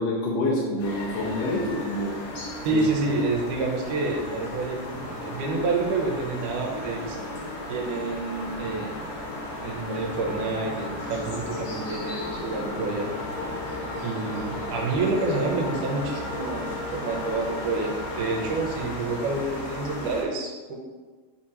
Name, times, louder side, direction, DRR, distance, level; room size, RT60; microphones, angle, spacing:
voice 1, 0.0-2.1 2.7-3.1, left 1 dB, 70° left, -5 dB, 1.7 m, -27 dB
sound 1, 0.8-20.2, left 1 dB, 85° left, 2.9 m, -34 dB
voice 2, 2.7-7.2 7.7-9.0 9.6-13.1 14.0-20.8, right 3 dB, 80° right, 1 dB, 2.2 m, -28 dB
7.0 x 2.8 x 5.0 m, 1.4 s
omnidirectional pair, 3.7 m